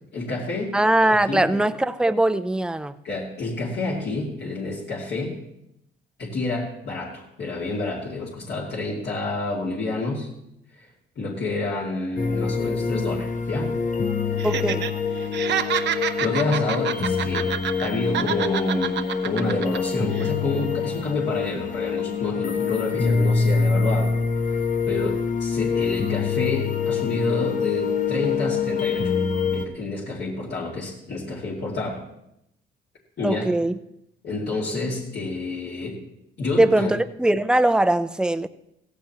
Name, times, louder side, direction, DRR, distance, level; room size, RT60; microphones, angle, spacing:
voice 1, 0.1-0.8 1.3-1.6 3.0-5.4 6.2-10.3 10.7-10.9 11.2-13.8 16.2-17.5 17.8-24.1 24.5-29.1 29.5-32.0 33.2-33.5 34.2-36.0 36.4-36.9, left 2 dB, 55° left, -4 dB, 2.5 m, -29 dB
voice 2, 0.7-3.0 14.4-14.9 33.2-33.8 36.6-38.5, right 1 dB, 5° right, 11 dB, 0.5 m, -21 dB
sound 1, 12.2-29.6, left 5 dB, 40° left, 1.0 m, -25 dB
Laughter, 14.4-14.9 15.2-17.9 18.1-19.8 20.1-20.3, right 9 dB, 60° right, 0.8 m, -27 dB
16.5 x 15.0 x 3.0 m, 0.82 s
cardioid pair, 90°, 20 cm